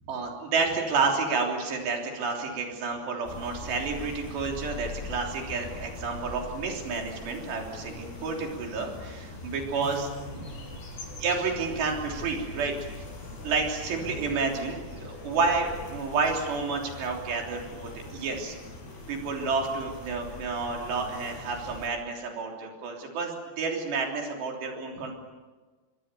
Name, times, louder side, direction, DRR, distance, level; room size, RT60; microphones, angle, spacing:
voice 1, 0.1-10.4 11.2-13.1 13.4-18.6 19.1-25.1, right 4 dB, 75° right, 1 dB, 5.5 m, -30 dB
sound 1, 3.2-21.9, left 2 dB, 70° left, 8.2 m, -42 dB
28.0 x 23.0 x 7.0 m, 1.3 s
omnidirectional pair, 5.0 m